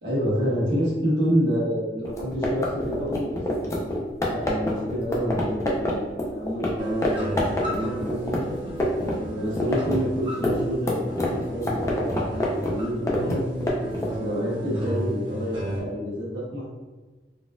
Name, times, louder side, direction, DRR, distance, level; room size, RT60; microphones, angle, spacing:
voice 1, 0.0-3.8 4.3-8.4 9.0-13.4 14.0-16.7, equal, 80° right, -6 dB, 1.2 m, -28 dB
sound 1, 2.0-6.7 7.0-7.1 7.4-9.1 9.4-14.2, left 1 dB, 15° left, 0.5 m, -26 dB
sound 2, 6.8-15.8, equal, 30° right, 0.8 m, -33 dB
4.0 x 2.4 x 2.3 m, 1.3 s
head